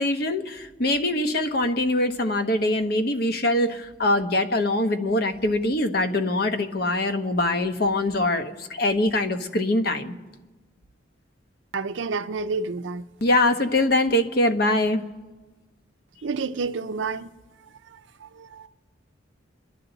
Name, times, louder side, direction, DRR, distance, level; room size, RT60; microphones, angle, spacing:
voice 1, 0.0-10.1 13.2-15.0, left 1 dB, 55° left, 1.0 m, -23 dB
voice 2, 11.7-13.0 16.2-17.3 17.9-18.7, right 4 dB, 80° right, 0.6 m, -30 dB
28.0 x 11.5 x 4.0 m
head